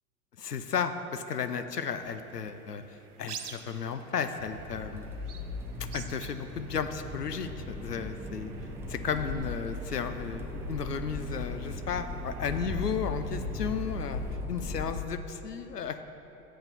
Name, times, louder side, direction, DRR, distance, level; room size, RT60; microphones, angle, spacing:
voice 1, 0.4-5.1 5.9-8.5 8.9-14.2 14.5-16.0, left 6 dB, 85° left, 9 dB, 0.6 m, -34 dB
sound 1, 1.8-14.4, right 7 dB, 75° right, 0.7 m, -49 dB
Accelerating revving vroom, 4.4-14.9, left 2 dB, 5° right, 0.5 m, -38 dB
7.5 x 5.5 x 6.9 m, 3.0 s
figure-of-eight pair, 85°, 46 cm